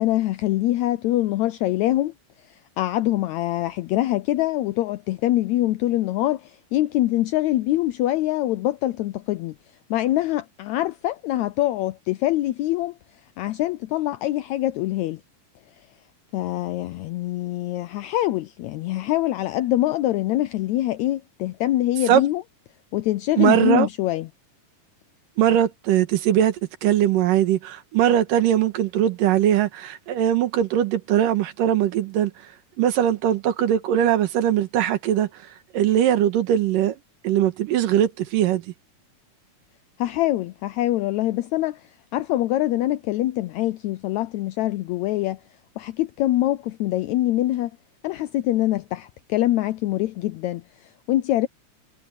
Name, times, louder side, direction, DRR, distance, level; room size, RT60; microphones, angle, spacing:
voice 1, 0.0-2.1 2.8-9.5 9.9-12.9 13.4-15.2 16.3-22.4 22.9-24.3 40.0-45.4 45.8-47.7 48.0-51.5, left 15 dB, 85° left, 1.6 m, -24 dB
voice 2, 23.4-23.9 25.4-32.3 32.8-35.3 35.7-36.9 37.2-38.6, right 11 dB, 80° right, 3.0 m, -20 dB
omnidirectional pair, 3.8 m